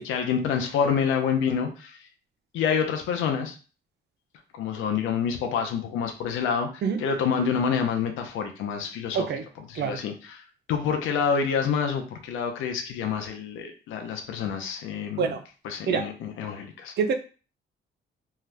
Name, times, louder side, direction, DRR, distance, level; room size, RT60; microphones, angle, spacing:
voice 1, 0.0-2.0 2.5-3.6 4.5-9.3 9.6-15.3 15.6-16.9, left 6 dB, 90° left, 0.7 m, -27 dB
voice 2, 6.8-7.0 9.1-9.4 9.8-10.0 15.2-15.4 15.9-16.0 17.0-17.1, right 6 dB, 60° right, 0.5 m, -25 dB
2.7 x 2.3 x 3.3 m
cardioid pair, 90°, 20 cm